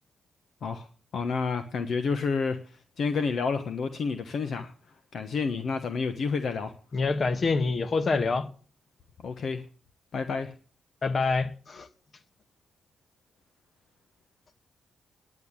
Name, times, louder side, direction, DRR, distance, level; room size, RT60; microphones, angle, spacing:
voice 1, 1.1-2.6 3.0-4.7 5.1-6.7 9.2-9.6 10.1-10.5, left 5 dB, 65° left, 1.1 m, -29 dB
voice 2, 6.9-8.5 11.0-11.9, left 4 dB, 50° left, 1.5 m, -26 dB
10.5 x 8.7 x 8.8 m
cardioid pair, 65°, 0 cm